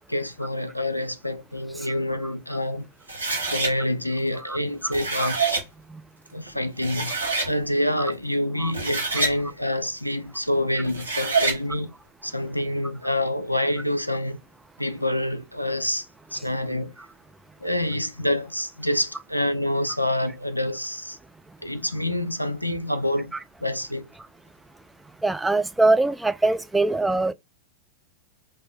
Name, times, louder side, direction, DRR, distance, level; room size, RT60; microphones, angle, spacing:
voice 1, 0.1-5.5 6.3-7.2 7.5-11.9 12.2-14.4 14.8-16.9 17.6-21.2 21.6-24.1, left 1 dB, 90° left, 0.4 m, -27 dB
sound 1, 3.1-3.7 4.7-5.6 6.5-6.6 6.8-7.5 8.6-9.4 10.8-11.6, right 3 dB, 85° right, 1.1 m, -26 dB
voice 2, 4.4-4.9 5.2-5.3 5.9-6.0 8.6-8.7 25.2-27.3, right 2 dB, 5° right, 0.3 m, -23 dB
4.7 x 2.1 x 3.9 m
figure-of-eight pair, 90°, 0 cm